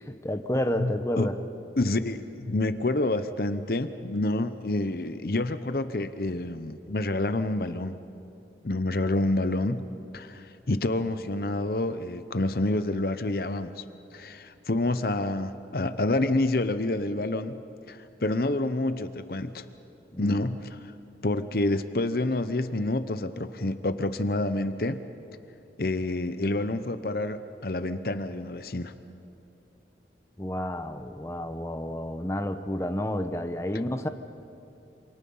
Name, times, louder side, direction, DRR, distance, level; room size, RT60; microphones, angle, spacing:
voice 1, 0.0-1.3 20.1-20.4 30.4-34.1, left 1 dB, 15° left, 7 dB, 0.9 m, -30 dB
voice 2, 0.8-1.3 1.8-8.0 8.6-9.8 10.1-13.8 14.1-17.6 17.9-19.6 20.2-20.9 21.2-25.0 25.8-28.9, left 2 dB, 55° left, 11 dB, 0.8 m, -28 dB
27.0 x 27.0 x 5.6 m, 2.7 s
head